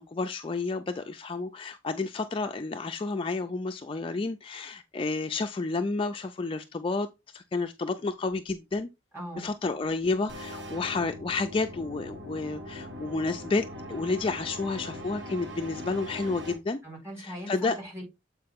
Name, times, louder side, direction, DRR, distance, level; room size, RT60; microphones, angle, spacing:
voice 1, 0.0-7.1 7.3-8.9 9.4-16.8 17.2-17.8, left 3 dB, 25° left, 0.4 m, -30 dB
voice 2, 9.1-9.5 16.8-18.0, equal, 15° right, 4.2 m, -40 dB
sound 1, 10.3-16.5, equal, 70° right, 1.6 m, -41 dB
7.7 x 4.7 x 3.5 m
head